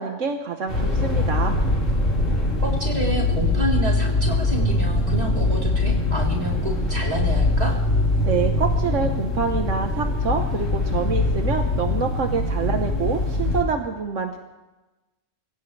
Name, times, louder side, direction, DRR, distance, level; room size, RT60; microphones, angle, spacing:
voice 1, 0.0-1.5 8.2-14.4, right 5 dB, 75° right, 4 dB, 1.5 m, -26 dB
sound 1, 0.7-13.6, left 2 dB, 85° left, 2.8 m, -22 dB
voice 2, 2.6-7.8, equal, 30° right, -2 dB, 3.7 m, -29 dB
26.5 x 16.5 x 3.3 m, 1.1 s
omnidirectional pair, 1.3 m